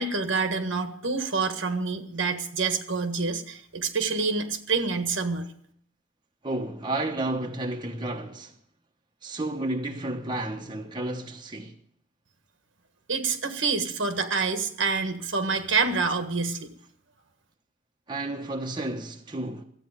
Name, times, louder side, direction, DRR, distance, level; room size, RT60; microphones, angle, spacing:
voice 1, 0.0-5.5 13.1-16.7, right 4 dB, 60° right, 1.6 m, -27 dB
voice 2, 6.4-8.5 9.2-11.7 18.1-19.6, right 2 dB, 20° right, 1.0 m, -31 dB
13.0 x 9.0 x 8.4 m
head